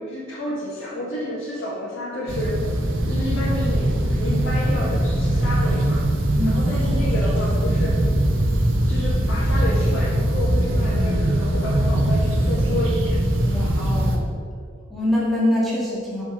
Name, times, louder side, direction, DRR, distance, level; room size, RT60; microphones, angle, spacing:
voice 1, 0.0-2.6 3.1-6.1 6.5-8.0 8.9-13.2, left 1 dB, 75° left, -10 dB, 2.2 m, -30 dB
sound 1, 2.3-14.2, right 1 dB, 70° right, 1.3 m, -21 dB
voice 2, 13.4-14.3 14.9-16.2, left 1 dB, ahead, -8 dB, 1.9 m, -24 dB
8.6 x 7.0 x 5.2 m, 2.2 s
head